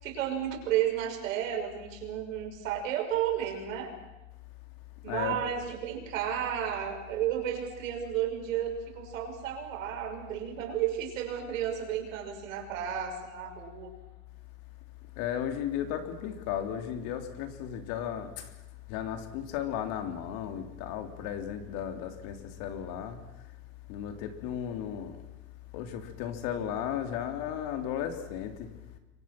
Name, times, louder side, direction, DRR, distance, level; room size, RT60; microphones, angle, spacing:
voice 1, 0.0-3.9 5.0-13.9, right 10 dB, 90° right, 3 dB, 6.3 m, -32 dB
voice 2, 5.1-5.4 15.2-18.5 18.9-23.2 23.9-25.1 25.7-28.7, left 9 dB, 60° left, 6 dB, 3.4 m, -35 dB
28.5 x 23.5 x 6.0 m, 0.97 s
supercardioid pair, 130°, 38 cm